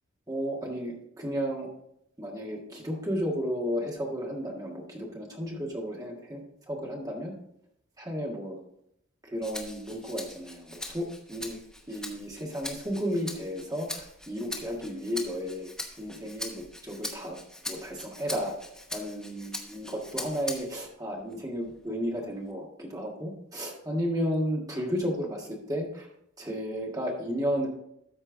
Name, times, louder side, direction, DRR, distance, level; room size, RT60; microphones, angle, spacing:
voice 1, 0.3-1.7 2.2-6.4 6.7-7.3 8.0-8.6 9.2-11.6 11.9-15.7 16.0-17.4 17.7-18.5 18.9-26.1 26.4-27.7, equal, 15° right, -1 dB, 1.6 m, -33 dB
Rattle (instrument), 9.4-20.9 21.3-22.5, left 1 dB, 5° left, 0.9 m, -41 dB
13.0 x 4.4 x 3.8 m, 0.77 s
head